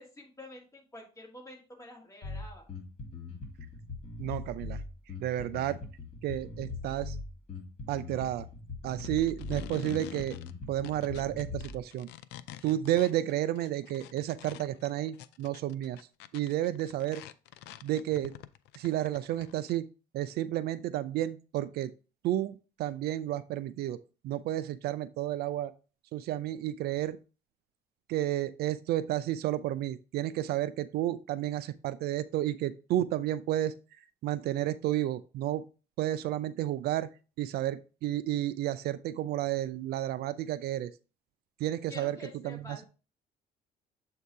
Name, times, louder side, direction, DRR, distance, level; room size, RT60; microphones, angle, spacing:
voice 1, 0.0-2.7 41.9-42.8, left 2 dB, 15° left, -1 dB, 2.2 m, -48 dB
Bass guitar, 2.2-11.8, left 3 dB, 35° left, 2.6 m, -41 dB
voice 2, 4.2-4.8 5.2-5.8 6.2-7.1 7.9-8.4 8.8-10.4 10.7-12.1 12.6-16.0 16.3-17.2 17.8-18.3 18.8-19.8 20.1-21.9 22.2-24.0 24.2-25.7 26.1-27.2 28.1-33.7 34.2-35.6 36.0-37.1 37.4-40.9 41.6-42.2 42.4-42.8, right 13 dB, 70° right, 14 dB, 0.4 m, -31 dB
sound 1, 9.0-19.7, left 13 dB, 85° left, 0.4 m, -47 dB
7.4 x 2.8 x 4.6 m, 0.34 s
cardioid pair, 110°, 17 cm